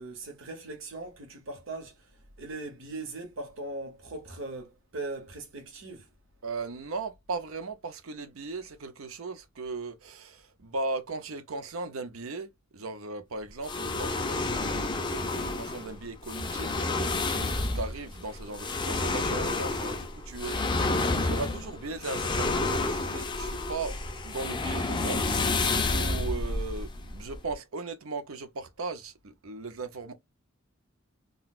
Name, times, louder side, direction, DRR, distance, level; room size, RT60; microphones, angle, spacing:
voice 1, 0.0-2.1 2.4-6.1, right 2 dB, 70° right, 1.0 m, -39 dB
voice 2, 6.4-16.8 17.3-20.6 21.1-24.0 24.2-25.3 25.7-30.1, right 3 dB, 85° right, 0.7 m, -37 dB
sound 1, 13.6-27.5, left 3 dB, 20° left, 0.5 m, -30 dB
3.8 x 2.3 x 2.4 m
head